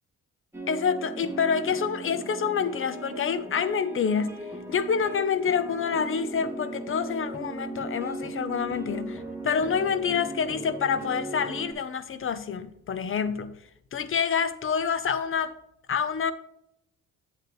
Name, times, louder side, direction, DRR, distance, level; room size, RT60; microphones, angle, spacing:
sound 1, 0.5-11.7, right 1 dB, 10° right, 1.6 m, -37 dB
voice 1, 0.7-4.4 4.7-13.6 13.9-15.6 15.9-16.3, left 6 dB, 45° left, 0.8 m, -27 dB
8.0 x 7.9 x 3.1 m
cardioid pair, 90°, 30 cm